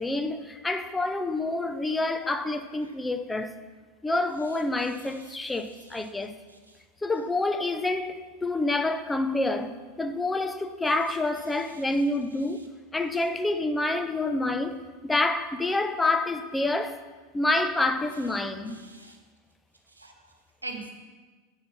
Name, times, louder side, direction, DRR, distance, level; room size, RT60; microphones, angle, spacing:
voice 1, 0.0-3.6 4.0-6.4 7.0-17.0 17.3-18.8, left 2 dB, 10° left, 0.5 m, -28 dB
voice 2, 4.8-6.0 6.7-6.8 11.6-11.8 18.6-19.2 20.0-20.3 20.6-20.9, right 3 dB, 85° right, 1.1 m, -44 dB
7.3 x 5.7 x 6.2 m
figure-of-eight pair, 85°, 0 cm